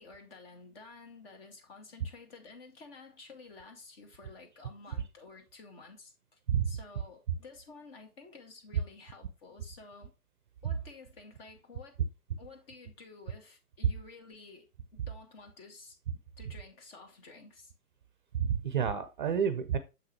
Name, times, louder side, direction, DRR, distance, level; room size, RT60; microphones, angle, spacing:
voice 1, 0.0-6.4 6.7-10.1 10.6-12.0 12.4-16.0 16.4-17.7, left 3 dB, 40° left, 2.0 m, -52 dB
voice 2, 18.3-19.8, right 7 dB, 35° right, 0.6 m, -29 dB
6.9 x 5.9 x 3.1 m
figure-of-eight pair, 125°, 45 cm